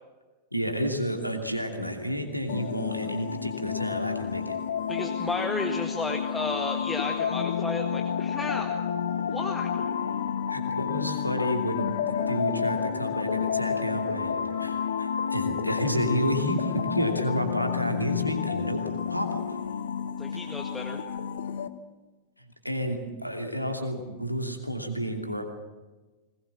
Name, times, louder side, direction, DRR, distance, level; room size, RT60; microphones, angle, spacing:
voice 1, 0.5-4.6 10.5-18.8 19.1-19.4 22.6-25.4, equal, 90° left, 4 dB, 2.7 m, -30 dB
sound 1, 2.5-21.7, left 7 dB, 65° left, 1.1 m, -30 dB
voice 2, 4.9-8.8 9.2-9.7 20.2-21.0, left 2 dB, 10° left, 3 dB, 1.8 m, -33 dB
22.0 x 19.5 x 7.3 m, 1.2 s
figure-of-eight pair, 90°, 0 cm